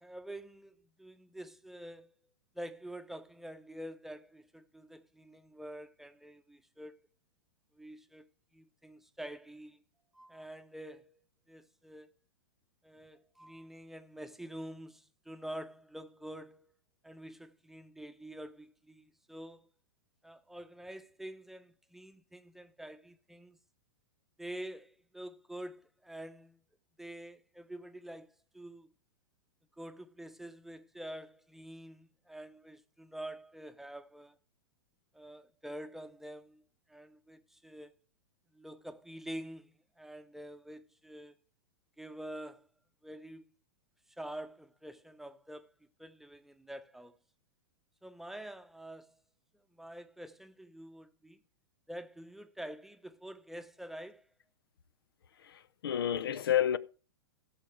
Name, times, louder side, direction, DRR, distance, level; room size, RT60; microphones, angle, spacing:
voice 1, 0.0-2.1 2.5-6.9 7.7-8.3 8.5-9.8 10.1-11.2 11.5-12.1 12.8-16.7 17.0-19.7 20.2-23.6 24.4-26.6 27.0-28.9 29.8-34.4 35.1-36.6 36.9-37.9 38.5-41.3 42.0-42.7 43.0-43.5 44.1-45.7 46.0-47.2 48.0-49.2 49.7-51.4 51.9-54.3, right 1 dB, ahead, 0.9 m, -47 dB
voice 2, 55.5-56.8, left 10 dB, 70° left, 0.8 m, -30 dB
16.5 x 7.3 x 3.4 m
hypercardioid pair, 105°, 13 cm